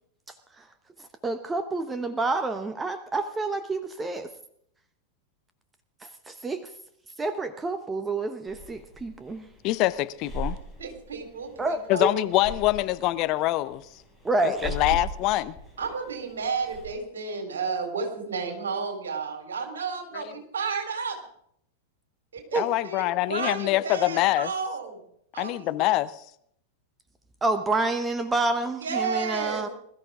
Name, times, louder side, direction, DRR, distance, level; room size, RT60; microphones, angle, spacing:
voice 1, 1.2-4.3 6.0-6.7 7.2-9.5 11.6-12.1 14.2-14.8 22.5-22.6 27.4-29.7, right 2 dB, 15° right, 10 dB, 1.0 m, -28 dB
Breathing, 8.5-16.9, equal, 5° left, 5.4 m, -39 dB
voice 2, 9.6-10.6 11.9-13.9 14.4-15.6 20.1-20.3 22.6-24.5 25.4-26.2, left 16 dB, 40° left, 14 dB, 0.7 m, -25 dB
voice 3, 10.8-12.3 15.8-21.2 22.3-25.0 25.3-25.7 28.8-29.7, right 5 dB, 65° right, 4 dB, 3.8 m, -32 dB
21.5 x 13.5 x 3.7 m, 0.67 s
figure-of-eight pair, 90°, 0 cm